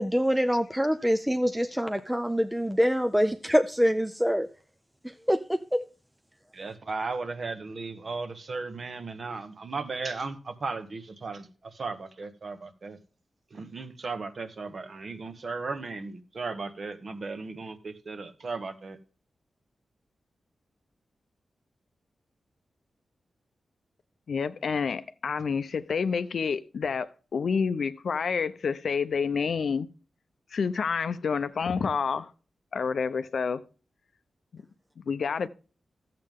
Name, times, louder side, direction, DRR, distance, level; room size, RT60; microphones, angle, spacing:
voice 1, 0.0-4.5 5.3-5.8, equal, 5° right, 0.4 m, -25 dB
voice 2, 6.5-13.0 13.5-19.0, right 4 dB, 45° right, 1.1 m, -36 dB
voice 3, 24.3-29.9 30.5-32.3 32.7-33.6 34.5-34.6 35.1-35.5, left 5 dB, 65° left, 0.6 m, -28 dB
13.5 x 7.6 x 3.6 m
wide cardioid pair, 160°, 0 cm